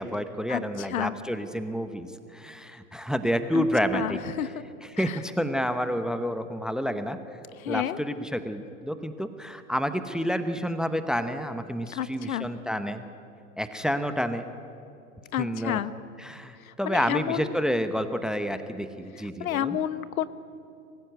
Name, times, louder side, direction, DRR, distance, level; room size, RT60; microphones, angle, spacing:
voice 1, 0.0-4.2 4.8-7.2 7.7-13.0 13.6-14.5 15.4-15.8 16.2-19.8, equal, ahead, 10 dB, 0.8 m, -29 dB
voice 2, 3.9-4.5 5.0-5.2 7.6-8.0 11.9-12.5 15.3-15.9 16.6-17.5 19.4-20.3, left 11 dB, 70° left, 15 dB, 1.1 m, -30 dB
22.5 x 15.5 x 9.3 m, 2.6 s
hypercardioid pair, 110°, 43 cm